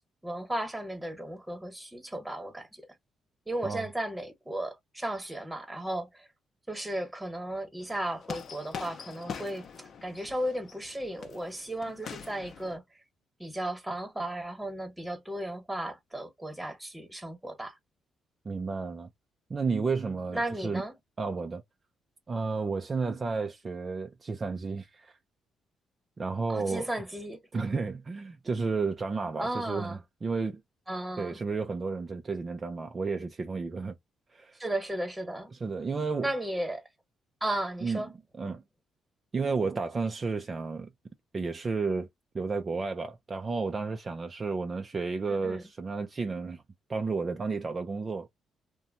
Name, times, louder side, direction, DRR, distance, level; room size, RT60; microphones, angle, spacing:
voice 1, 0.2-2.8 3.5-6.3 6.7-13.0 13.4-17.8 20.3-20.9 26.5-27.4 29.4-30.0 30.9-31.4 34.6-35.5 36.2-36.9 37.4-38.1 45.3-45.6, right 1 dB, 10° right, 1.2 m, -35 dB
sound 1, 7.8-12.8, left 6 dB, 55° left, 0.6 m, -43 dB
voice 2, 18.5-19.1 19.5-20.8 21.2-21.6 22.3-25.2 26.2-26.9 27.5-30.6 31.2-33.9 34.3-34.6 35.5-36.3 37.8-38.0 38.4-38.6 39.3-40.9 41.3-42.1 42.3-46.6 46.9-48.3, right 4 dB, 35° right, 0.4 m, -32 dB
2.8 x 2.2 x 2.6 m
cardioid pair, 90°, 0 cm